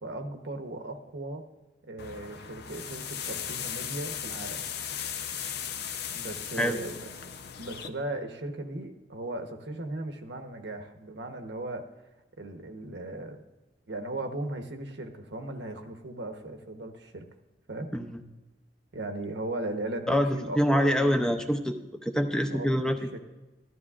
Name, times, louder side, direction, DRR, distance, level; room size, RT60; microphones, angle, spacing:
voice 1, 0.0-1.5 1.9-4.6 6.1-7.1 7.6-11.8 12.4-13.4 13.9-17.2 17.7-17.9 18.9-21.3 22.5-23.2, right 2 dB, 80° right, 5 dB, 1.0 m, -37 dB
sound 1, 2.0-7.9, left 8 dB, 65° left, 0.6 m, -37 dB
voice 2, 20.1-21.7 22.0-23.0, equal, 5° left, 6 dB, 0.6 m, -25 dB
14.0 x 12.5 x 2.4 m, 1.1 s
head